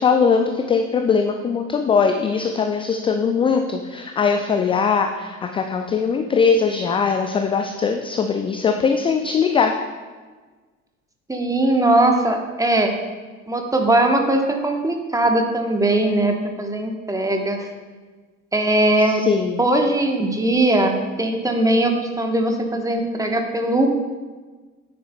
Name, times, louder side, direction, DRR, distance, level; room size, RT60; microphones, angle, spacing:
voice 1, 0.0-9.7 19.0-19.6, left 5 dB, 15° left, 5 dB, 0.3 m, -20 dB
voice 2, 11.3-12.9 13.5-17.7 18.5-19.2 19.6-23.9, right 1 dB, 10° right, 3 dB, 1.0 m, -20 dB
9.6 x 6.9 x 2.2 m, 1.4 s
figure-of-eight pair, 60°, 40 cm